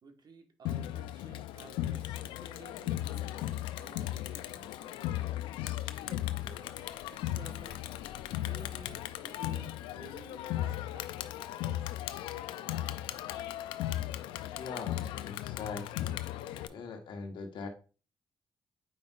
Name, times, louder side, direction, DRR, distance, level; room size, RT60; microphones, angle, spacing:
voice 1, 0.0-3.3 3.8-4.9 6.0-7.8 8.4-11.3, right 4 dB, 55° right, 5 dB, 1.4 m, -54 dB
Crowd, 0.6-16.7, left 13 dB, 85° left, 0.4 m, -36 dB
voice 2, 14.6-16.2 16.7-17.7, left 4 dB, 70° left, 5 dB, 1.3 m, -42 dB
8.5 x 5.3 x 2.4 m, 0.35 s
supercardioid pair, 50°, 8 cm